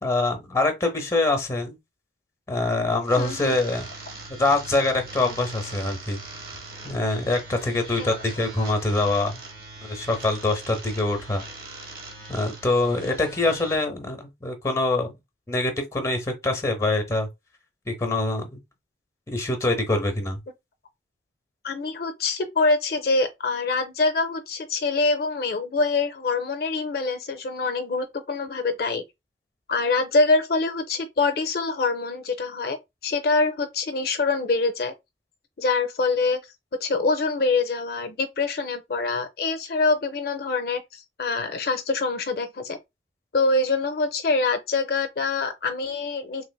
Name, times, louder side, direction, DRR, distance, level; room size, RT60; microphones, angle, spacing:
voice 1, 0.0-1.8 2.5-3.9 4.4-6.2 6.8-9.4 9.8-11.4 12.3-15.1 15.5-17.3 17.9-18.6 19.3-20.4, left 2 dB, 15° left, 0.7 m, -24 dB
sound 1, 3.0-13.8, right 3 dB, 55° right, 0.9 m, -41 dB
voice 2, 3.2-3.5 7.9-8.1 21.6-29.0 29.7-32.8 33.0-34.9 35.6-36.4 36.8-42.8 43.3-46.4, left 3 dB, 55° left, 0.5 m, -25 dB
3.2 x 3.1 x 2.2 m
head